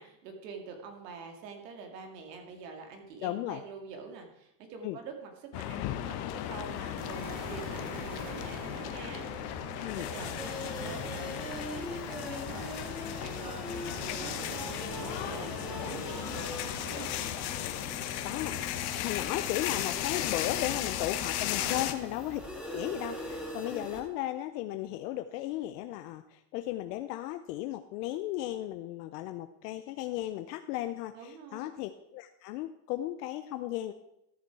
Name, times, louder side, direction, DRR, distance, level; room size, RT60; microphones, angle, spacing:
voice 1, 0.0-12.9 13.2-13.9 14.2-17.1 20.6-20.8 21.6-21.9 31.1-31.7, right 5 dB, 85° right, 4 dB, 2.4 m, -46 dB
voice 2, 3.2-3.6 4.8-5.0 9.8-10.1 18.2-22.4 22.7-33.9, left 14 dB, 75° left, 9 dB, 0.7 m, -35 dB
sound 1, 5.5-21.9, left 13 dB, 50° left, 1.0 m, -36 dB
sound 2, 7.0-21.3, right 4 dB, 65° right, 2.9 m, -46 dB
sound 3, 10.4-24.0, equal, 5° right, 2.5 m, -42 dB
13.0 x 6.8 x 4.7 m, 0.83 s
supercardioid pair, 130°, 48 cm